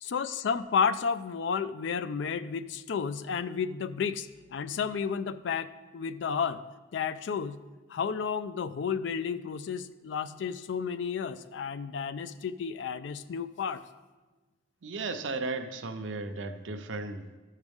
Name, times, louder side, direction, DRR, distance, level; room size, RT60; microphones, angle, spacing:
voice 1, 0.0-5.7 5.9-6.6 6.9-7.6 7.9-13.8, left 6 dB, 70° left, 14 dB, 0.4 m, -32 dB
voice 2, 14.8-17.4, right 3 dB, 80° right, 7 dB, 0.7 m, -35 dB
13.0 x 6.5 x 3.5 m, 1.3 s
head